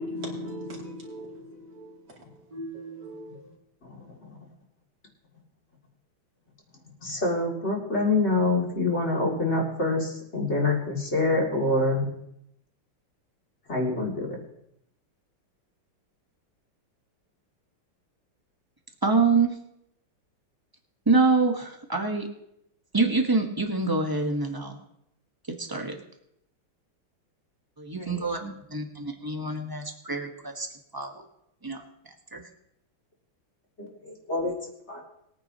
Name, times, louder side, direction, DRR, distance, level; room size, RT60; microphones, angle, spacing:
voice 1, 0.0-1.9 2.5-3.5, equal, 50° right, 3.2 m, -38 dB
voice 2, 3.8-4.5 7.0-12.1 13.7-14.4 28.0-28.5 33.8-35.0, left 2 dB, 30° left, 2.5 m, -27 dB
voice 3, 19.0-19.5 21.1-22.3 22.9-24.8 25.6-26.0 27.8-28.4 28.7-30.7 30.9-31.2 31.6-31.8 32.3-32.4, right 3 dB, 25° right, 0.5 m, -25 dB
21.0 x 9.7 x 2.8 m
omnidirectional pair, 2.4 m